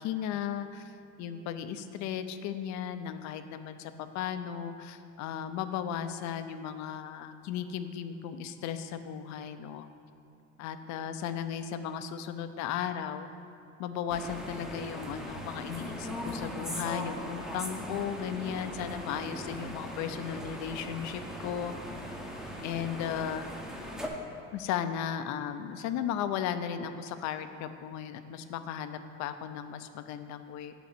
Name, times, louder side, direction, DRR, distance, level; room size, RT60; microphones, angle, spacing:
voice 1, 0.0-9.9 10.6-13.3 13.8-21.7 22.6-23.5 24.5-30.7, left 9 dB, 50° left, 10 dB, 0.5 m, -36 dB
sound 1, 14.1-24.1, equal, ahead, 0.8 m, -39 dB
7.9 x 3.8 x 6.8 m, 2.5 s
supercardioid pair, 105°, 37 cm